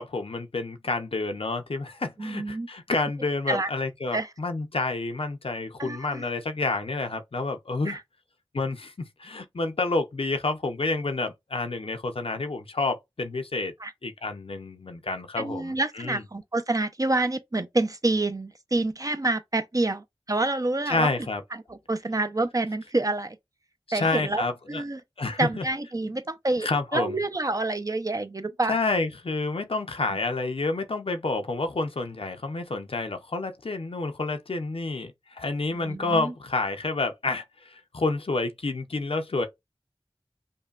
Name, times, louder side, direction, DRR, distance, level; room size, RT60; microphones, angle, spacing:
voice 1, 0.0-8.0 8.5-13.7 14.0-16.2 20.9-21.4 23.9-24.8 25.2-25.6 26.6-27.2 28.7-39.5, left 3 dB, 70° left, 0.6 m, -29 dB
voice 2, 2.2-2.7 3.5-3.7 4.1-4.3 5.8-6.2 7.9-8.0 13.8-13.9 15.4-21.1 21.7-23.4 23.9-25.0 25.4-28.8 35.7-36.3, right 2 dB, 35° right, 0.5 m, -28 dB
5.3 x 2.2 x 2.4 m
wide cardioid pair, 50°, 10 cm